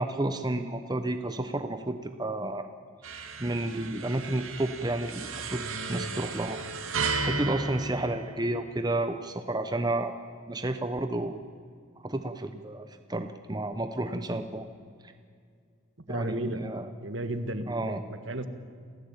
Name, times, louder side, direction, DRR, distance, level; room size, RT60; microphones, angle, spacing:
voice 1, 0.0-2.7 3.4-5.6 5.9-6.6 7.2-10.2 10.5-11.4 12.0-14.7 16.1-16.9 17.7-18.0, right 1 dB, 20° right, 8 dB, 0.9 m, -31 dB
sound 1, 3.0-8.8, right 4 dB, 85° right, 2.4 m, -34 dB
voice 2, 16.1-16.6 17.0-18.0 18.3-18.5, right 1 dB, 65° right, 10 dB, 1.8 m, -33 dB
27.0 x 16.5 x 8.9 m, 2.2 s
head